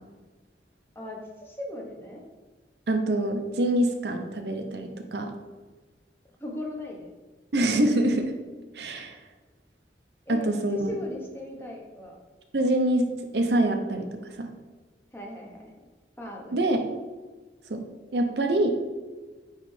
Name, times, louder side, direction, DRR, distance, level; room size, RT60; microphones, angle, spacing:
voice 1, 0.9-2.2 6.4-7.1 10.3-12.2 15.1-15.6 16.2-16.7, left 1 dB, 15° left, -1 dB, 0.9 m, -38 dB
voice 2, 2.9-5.3 7.5-8.3 8.7-9.2 10.3-11.0 12.5-14.5 16.5-16.8 17.7-17.8 18.1-18.7, right 1 dB, 70° right, 5 dB, 0.7 m, -25 dB
9.1 x 3.2 x 3.2 m, 1.3 s
head